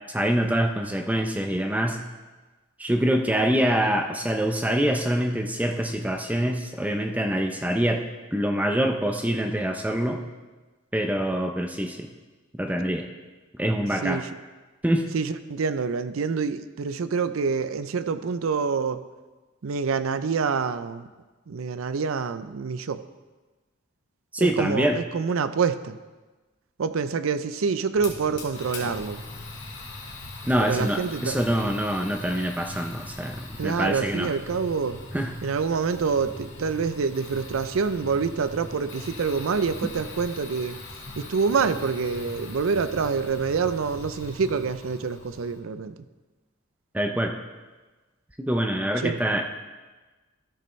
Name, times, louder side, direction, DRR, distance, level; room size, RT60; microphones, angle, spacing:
voice 1, 0.1-2.0 2.8-8.0 8.3-10.2 10.9-12.1 12.6-13.1 13.6-14.2 14.8-15.1 24.3-25.0 30.5-34.3 35.1-35.3 46.9-47.3 48.5-49.4, equal, 5° right, 4 dB, 0.5 m, -25 dB
voice 2, 15.1-19.0 19.6-21.1 21.5-23.0 24.4-26.0 26.8-29.2 30.6-31.4 33.6-35.0 35.4-40.8 41.2-45.9 49.0-49.2, right 5 dB, 85° right, 12 dB, 0.5 m, -26 dB
Fire, 28.0-45.6, left 2 dB, 55° left, 2.1 m, -40 dB
13.5 x 6.7 x 3.2 m, 1.2 s
head